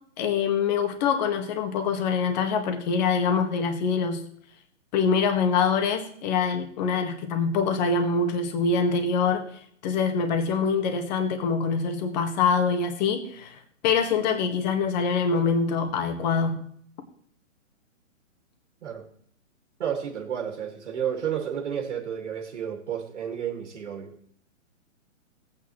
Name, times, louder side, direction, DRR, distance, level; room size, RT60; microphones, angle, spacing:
voice 1, 0.2-4.2 4.9-9.4 9.8-16.6, left 5 dB, 35° left, 1.7 m, -24 dB
voice 2, 19.8-24.2, right 8 dB, 60° right, 2.2 m, -31 dB
17.0 x 9.0 x 3.1 m
hypercardioid pair, 145°, 40 cm